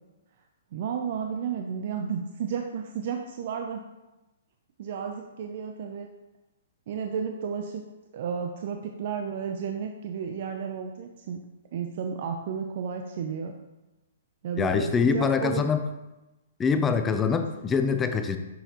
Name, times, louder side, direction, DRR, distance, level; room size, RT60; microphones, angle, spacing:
voice 1, 0.7-3.8 4.8-6.1 6.9-7.8 8.1-11.4 11.7-13.6 14.4-15.6, right 7 dB, 55° right, 4 dB, 0.5 m, -32 dB
voice 2, 14.6-15.8 16.6-18.4, left 5 dB, 15° left, 8 dB, 0.5 m, -24 dB
6.3 x 5.5 x 3.0 m, 1.0 s
hypercardioid pair, 135°, 0 cm